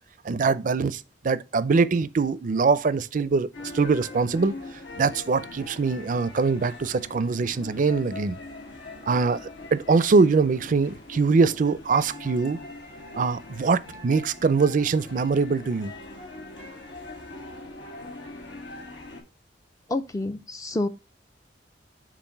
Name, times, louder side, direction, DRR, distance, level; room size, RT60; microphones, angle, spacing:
voice 1, 0.2-3.5 3.7-4.5 5.0-8.4 9.1-9.4 9.7-12.6 13.2-15.9, right 4 dB, 45° right, 0.4 m, -23 dB
sound 1, 3.5-19.2, left 2 dB, 85° left, 1.9 m, -42 dB
voice 2, 19.9-20.9, left 2 dB, 20° left, 0.3 m, -28 dB
7.2 x 2.5 x 5.4 m
head